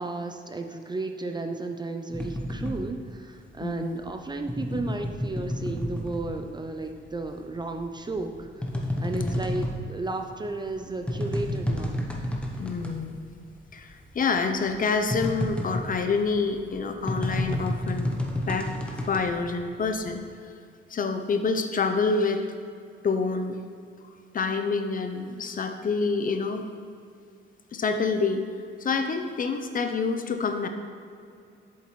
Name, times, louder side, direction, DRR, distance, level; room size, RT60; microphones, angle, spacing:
voice 1, 0.0-8.6 9.0-12.0, right 2 dB, 20° right, 5 dB, 0.4 m, -33 dB
sound 1, 2.1-6.8 7.2-13.0 13.3-13.4 13.7-20.2, left 1 dB, 5° left, 0.8 m, -31 dB
voice 2, 3.6-4.0 8.8-9.4 12.6-13.2 13.7-18.1 18.5-18.7 19.1-20.5 20.9-22.4 23.0-23.6 24.3-26.7 27.7-28.4 28.8-30.7, left 4 dB, 40° left, 6 dB, 0.6 m, -27 dB
7.9 x 7.2 x 3.1 m, 2.4 s
cardioid pair, 125°, 21 cm